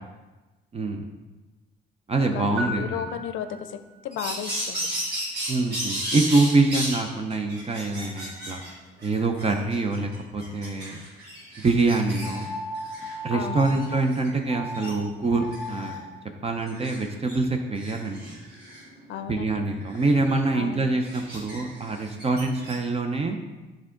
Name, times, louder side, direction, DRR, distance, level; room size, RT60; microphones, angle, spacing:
voice 1, 0.7-1.1 2.1-3.1 5.5-8.6 9.0-11.0 11.6-12.5 13.2-16.0 16.4-18.2 19.3-23.4, right 3 dB, 30° right, 4 dB, 0.6 m, -25 dB
voice 2, 2.3-4.9 13.3-13.9 19.1-19.6 20.5-20.8, left 9 dB, 75° left, 10 dB, 0.5 m, -34 dB
sound 1, 2.6-4.0, left 1 dB, 90° right, 1.1 m, -35 dB
sound 2, 4.1-7.0 7.3-8.7 9.0-12.5 12.8-13.2 13.6-14.4 14.7-15.0 15.4-16.0 16.6-17.4 17.8-22.8, equal, 55° right, 2.1 m, -35 dB
sound 3, 12.2-14.0 14.5-14.9 15.2-16.1, left 1 dB, 20° left, 1.0 m, -36 dB
7.3 x 3.7 x 3.7 m, 1.2 s
cardioid pair, 90°, 20 cm